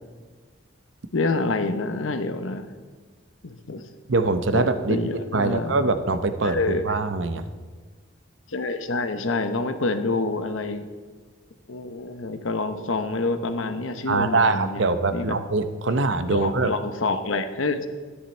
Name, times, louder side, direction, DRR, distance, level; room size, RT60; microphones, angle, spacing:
voice 1, 1.1-2.7 3.4-3.8 4.5-5.7 6.4-7.0 8.5-10.9 11.7-14.8 15.1-15.4 16.3-17.9, left 3 dB, 80° left, 9 dB, 0.9 m, -27 dB
voice 2, 4.1-7.5 14.1-16.7, right 3 dB, 65° right, 10 dB, 0.8 m, -23 dB
12.5 x 10.0 x 4.4 m, 1.4 s
head